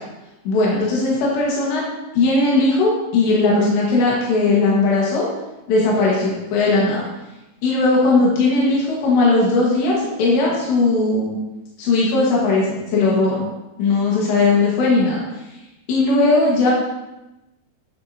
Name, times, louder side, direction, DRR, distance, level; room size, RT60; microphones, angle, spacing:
voice 1, 0.5-1.8 2.2-5.3 5.7-7.0 7.6-11.4 11.8-13.5 13.8-15.2 15.9-16.7, left 3 dB, 80° left, -5 dB, 4.0 m, -18 dB
13.5 x 7.3 x 2.9 m, 0.99 s
omnidirectional pair, 4.9 m